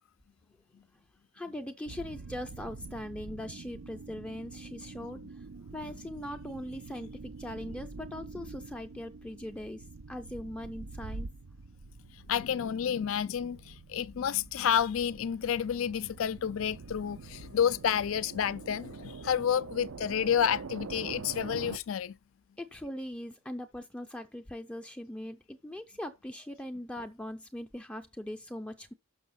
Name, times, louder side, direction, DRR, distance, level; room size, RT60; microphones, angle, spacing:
voice 1, 1.3-5.2 5.7-11.3 22.6-28.9, left 1 dB, 5° left, 0.4 m, -40 dB
sound 1, 1.9-21.8, right 4 dB, 90° right, 0.6 m, -45 dB
voice 2, 12.3-22.2, left 8 dB, 75° left, 0.4 m, -30 dB
6.3 x 6.1 x 5.7 m
head